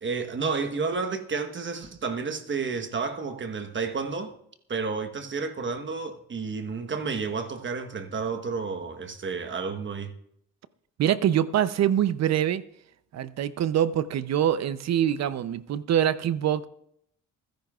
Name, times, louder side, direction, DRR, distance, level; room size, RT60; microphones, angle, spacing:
voice 1, 0.0-4.3 4.7-10.1, right 4 dB, 40° right, 1.2 m, -31 dB
voice 2, 11.0-12.6 13.1-16.7, right 10 dB, 60° right, 0.6 m, -24 dB
28.0 x 10.5 x 2.4 m
cardioid pair, 90°, 30 cm